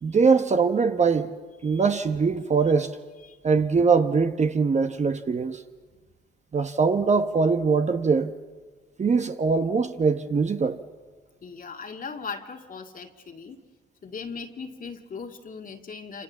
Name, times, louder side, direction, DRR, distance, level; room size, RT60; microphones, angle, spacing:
voice 1, 0.0-1.3 1.6-3.0 3.4-5.6 6.5-8.3 9.0-10.8, right 5 dB, 35° right, 1.2 m, -22 dB
voice 2, 11.4-13.6 14.0-16.2, left 5 dB, 45° left, 2.1 m, -38 dB
27.5 x 26.5 x 7.3 m
cardioid pair, 90°, 20 cm